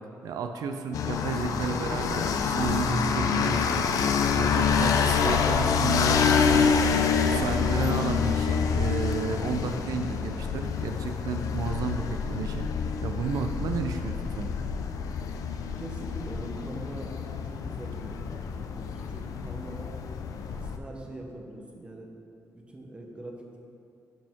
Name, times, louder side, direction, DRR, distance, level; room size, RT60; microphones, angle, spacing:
voice 1, 0.2-3.9 4.3-7.0 7.3-12.6 13.0-14.5, right 5 dB, 85° right, 6 dB, 0.5 m, -32 dB
sound 1, 0.9-20.8, left 6 dB, 70° left, 0.5 m, -27 dB
voice 2, 15.8-20.0 20.5-22.1 22.5-23.6, right 2 dB, 15° right, 0 dB, 0.8 m, -43 dB
11.0 x 5.2 x 3.6 m, 2.5 s
wide cardioid pair, 170°, 6 cm